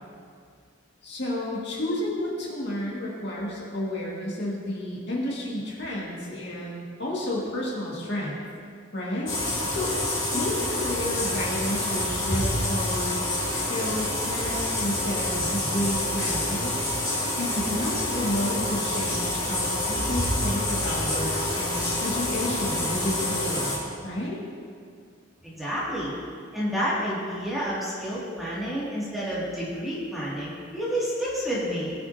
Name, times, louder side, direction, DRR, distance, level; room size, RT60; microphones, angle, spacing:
voice 1, 1.0-8.4 8.9-9.9 10.3-16.7 17.4-23.8 24.0-24.4, left 1 dB, 55° left, -5 dB, 2.2 m, -31 dB
sound 1, 9.3-23.8, left 1 dB, 20° left, 3.0 m, -27 dB
voice 2, 25.4-26.1 26.5-31.9, equal, ahead, -10 dB, 2.6 m, -29 dB
20.0 x 6.7 x 2.9 m, 2.2 s
head